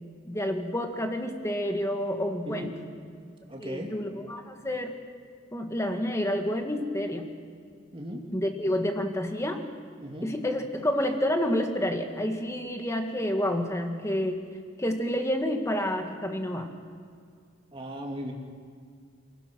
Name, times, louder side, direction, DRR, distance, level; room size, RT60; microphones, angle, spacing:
voice 1, 0.2-2.7 3.6-5.0 5.5-7.3 8.3-9.6 10.2-14.4 14.8-16.7, left 1 dB, 15° left, 4 dB, 1.8 m, -29 dB
voice 2, 2.4-2.8 3.5-3.9 7.9-8.2 10.0-10.3 17.7-18.3, equal, 30° right, 0 dB, 2.6 m, -37 dB
27.5 x 16.5 x 6.3 m, 2.2 s
head